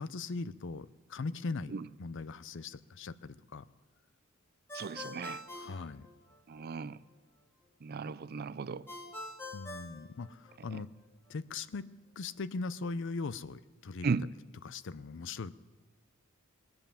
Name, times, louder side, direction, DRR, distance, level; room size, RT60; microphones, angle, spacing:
voice 1, 0.0-1.7 2.0-3.7 5.6-6.1 9.5-10.9 11.3-11.9 12.2-14.2 14.6-15.5, left 3 dB, 60° left, 0.5 m, -39 dB
Ringtone, 4.7-6.6 8.9-10.8, left 2 dB, 10° left, 1.9 m, -45 dB
voice 2, 4.7-5.4 6.5-7.0 7.8-8.9 14.0-14.3, right 5 dB, 45° right, 0.4 m, -35 dB
22.0 x 7.9 x 7.1 m
head